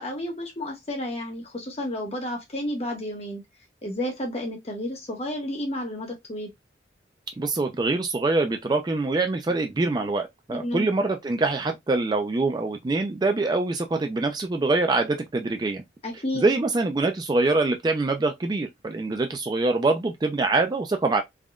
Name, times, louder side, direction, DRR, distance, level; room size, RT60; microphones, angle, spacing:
voice 1, 0.0-3.4 3.8-6.5 10.5-10.9 16.0-16.5, left 1 dB, 35° left, 0.9 m, -31 dB
voice 2, 7.4-15.8 16.3-21.2, right 3 dB, 25° right, 0.3 m, -24 dB
3.5 x 2.2 x 2.3 m
head